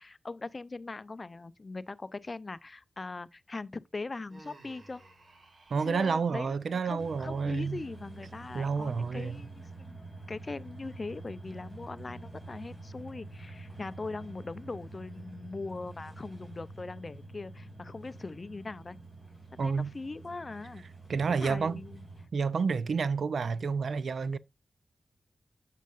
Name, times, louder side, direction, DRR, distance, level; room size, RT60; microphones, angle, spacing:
voice 1, 0.0-5.0 5.8-10.0 10.3-19.0 19.5-20.8 21.4-22.1, left 3 dB, 40° left, 0.4 m, -41 dB
Human voice, 4.3-6.2, right 2 dB, 70° right, 1.9 m, -55 dB
voice 2, 5.7-7.8 8.5-9.4 19.6-19.9 21.1-21.8 22.3-24.4, right 5 dB, 85° right, 0.4 m, -29 dB
sound 1, 7.0-22.3, right 2 dB, 25° right, 4.8 m, -47 dB
9.2 x 7.5 x 2.4 m
wide cardioid pair, 110°, 0 cm